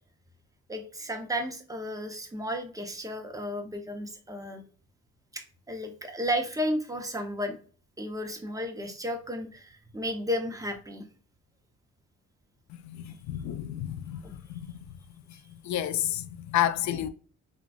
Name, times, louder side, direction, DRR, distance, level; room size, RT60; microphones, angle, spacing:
voice 1, 0.7-4.6 5.3-7.6 8.0-11.1 14.2-14.3, equal, 10° right, 0.8 m, -33 dB
voice 2, 12.7-14.9 15.3-15.4 15.6-17.1, left 11 dB, 65° left, 0.5 m, -31 dB
3.8 x 2.3 x 2.3 m
cardioid pair, 90°, 30 cm